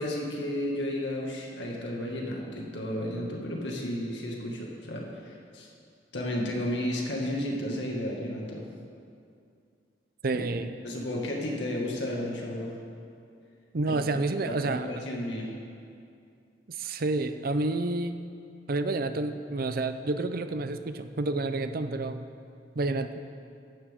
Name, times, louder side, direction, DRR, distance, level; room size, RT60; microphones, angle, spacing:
voice 1, 0.0-5.7 6.1-8.6 10.3-10.4 10.8-12.7 13.9-14.0 14.4-15.5, left 1 dB, 80° left, -2 dB, 2.1 m, -33 dB
voice 2, 10.2-10.7 13.7-15.0 16.7-18.2 18.7-22.3 22.7-23.2, right 2 dB, 55° right, 9 dB, 0.6 m, -29 dB
16.0 x 11.5 x 3.7 m, 2.4 s
head